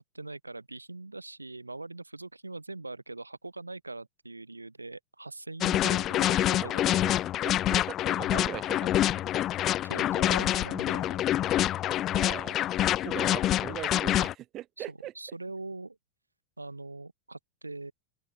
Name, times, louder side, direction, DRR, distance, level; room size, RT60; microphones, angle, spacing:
voice 1, 0.1-7.0 9.8-11.4 14.8-16.0 16.6-17.9, right 2 dB, 80° right, 3.7 m, -42 dB
sound 1, 5.6-14.3, left 13 dB, 30° left, 0.8 m, -26 dB
voice 2, 7.4-9.2 12.1-12.6 13.0-15.1, right 14 dB, 35° right, 6.4 m, -41 dB
open air
figure-of-eight pair, 90°, 0 cm